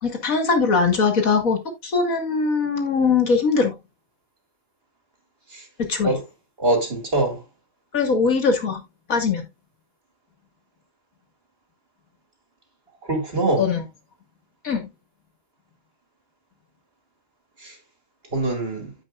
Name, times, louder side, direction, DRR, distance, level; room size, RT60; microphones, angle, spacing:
voice 1, 0.0-3.8 5.9-6.1 7.9-8.8 9.1-9.5 13.6-13.8 14.6-14.9, left 4 dB, 85° left, 2.4 m, -21 dB
voice 2, 6.6-7.4 13.1-13.6 17.6-17.7 18.3-18.9, right 2 dB, 45° right, 2.7 m, -23 dB
15.0 x 5.3 x 2.5 m
omnidirectional pair, 1.4 m